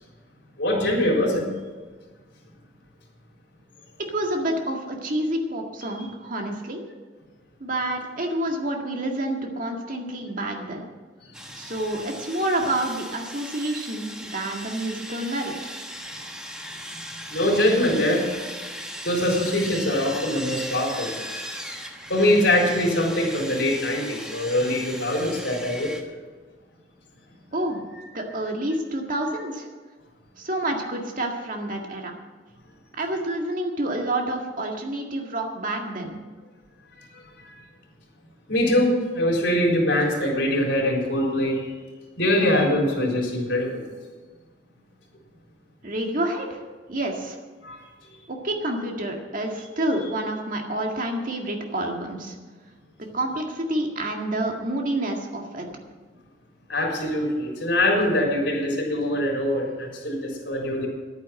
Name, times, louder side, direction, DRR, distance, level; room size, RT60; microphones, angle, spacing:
voice 1, 0.6-1.5 16.0-16.3 16.6-18.4 19.0-21.1 22.1-25.9 38.5-41.7 42.2-43.8 47.6-47.8 56.7-60.9, left 1 dB, 75° left, -1 dB, 4.2 m, -23 dB
voice 2, 4.1-6.8 7.6-10.8 11.5-15.7 27.5-27.8 28.1-29.7 30.4-32.1 32.9-36.2 45.8-46.6 46.9-47.4 48.3-52.4 53.1-55.7, right 1 dB, 50° right, 2 dB, 1.9 m, -28 dB
Sawing, 11.3-26.0, equal, 5° right, 1.3 m, -38 dB
11.0 x 9.5 x 7.6 m, 1.4 s
head